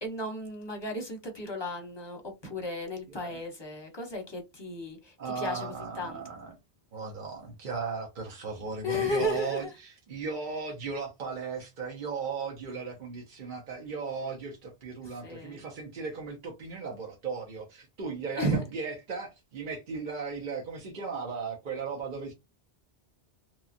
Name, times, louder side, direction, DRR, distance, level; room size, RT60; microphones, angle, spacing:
voice 1, 0.0-6.2 8.8-9.7 15.0-15.6 18.4-18.6, left 1 dB, 30° left, 0.7 m, -34 dB
voice 2, 3.1-3.4 5.2-6.5 6.9-22.3, right 5 dB, 55° right, 0.7 m, -36 dB
2.9 x 2.3 x 2.5 m
omnidirectional pair, 1.1 m